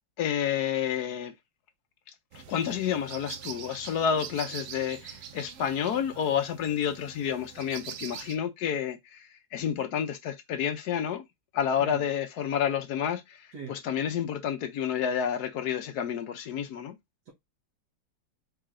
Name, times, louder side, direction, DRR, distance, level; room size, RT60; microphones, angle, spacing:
voice 1, 0.2-1.3 2.3-11.2 11.5-13.4 13.7-17.0, left 8 dB, 65° left, 1.1 m, -30 dB
sound 1, 2.3-8.4, right 9 dB, 80° right, 0.6 m, -44 dB
voice 2, 11.8-12.0 13.5-13.8 17.2-17.3, right 5 dB, 60° right, 1.8 m, -41 dB
4.8 x 2.9 x 3.6 m
omnidirectional pair, 2.0 m